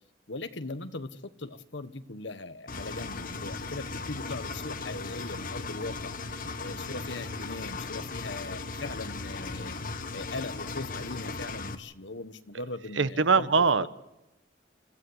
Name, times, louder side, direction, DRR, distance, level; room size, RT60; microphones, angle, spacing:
voice 1, 0.3-6.1 6.6-13.9, left 2 dB, 70° left, 11 dB, 1.4 m, -39 dB
Engine, 2.7-11.8, left 3 dB, 50° left, 1.3 m, -37 dB
voice 2, 13.0-13.9, right 4 dB, 80° right, 14 dB, 1.0 m, -22 dB
29.5 x 15.0 x 8.1 m, 0.97 s
head